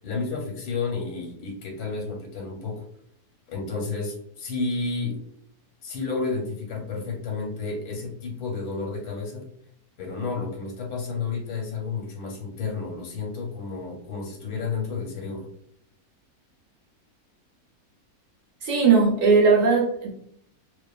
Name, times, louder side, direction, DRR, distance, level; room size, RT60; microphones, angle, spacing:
voice 1, 0.0-2.8 3.5-5.2 5.8-9.4 10.0-15.5, left 4 dB, 85° left, -1 dB, 1.2 m, -31 dB
voice 2, 18.6-20.1, right 4 dB, 65° right, -1 dB, 0.9 m, -18 dB
2.4 x 2.3 x 2.2 m, 0.67 s
omnidirectional pair, 1.6 m